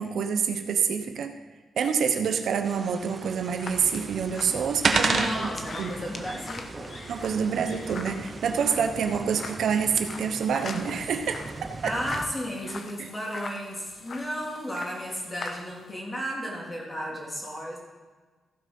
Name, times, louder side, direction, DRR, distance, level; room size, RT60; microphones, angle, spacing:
voice 1, 0.0-1.4 1.8-5.5 5.8-5.9 7.1-11.4 11.8-11.9 13.0-13.1, right 6 dB, 75° right, 6 dB, 1.1 m, -27 dB
sound 1, 2.6-12.3, right 3 dB, 25° right, 0.8 m, -42 dB
sound 2, 2.8-15.9, left 4 dB, 45° left, 1.1 m, -43 dB
sound 3, 3.7-9.2, right 4 dB, 45° right, 1.2 m, -32 dB
voice 2, 5.1-7.0 11.8-17.8, equal, 15° left, -2 dB, 3.0 m, -34 dB
15.0 x 7.6 x 5.5 m, 1.4 s
wide cardioid pair, 145°, 0 cm